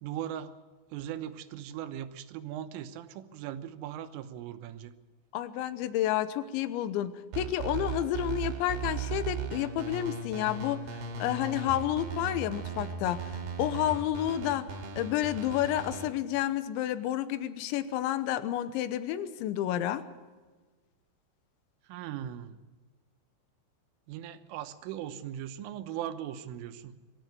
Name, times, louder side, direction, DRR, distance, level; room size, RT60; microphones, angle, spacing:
voice 1, 0.0-0.5 0.9-4.9 21.9-22.6 24.1-27.0, right 11 dB, 90° right, 9 dB, 3.6 m, -39 dB
voice 2, 5.3-14.7 15.0-20.0, left 12 dB, 80° left, 13 dB, 3.1 m, -30 dB
sound 1, 7.3-16.1, right 5 dB, 60° right, 4.1 m, -37 dB
23.0 x 13.5 x 9.4 m, 1.3 s
omnidirectional pair, 5.6 m